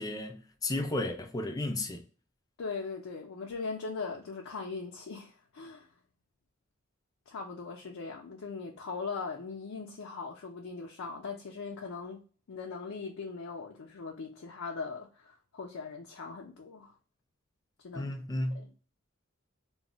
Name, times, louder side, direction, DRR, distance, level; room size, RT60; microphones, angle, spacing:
voice 1, 0.0-2.0 17.9-18.7, left 1 dB, 20° left, 0.3 m, -33 dB
voice 2, 2.6-5.9 7.3-12.2 12.5-16.9 17.8-18.1 18.5-18.7, left 4 dB, 85° left, 0.4 m, -40 dB
2.2 x 2.0 x 3.7 m
head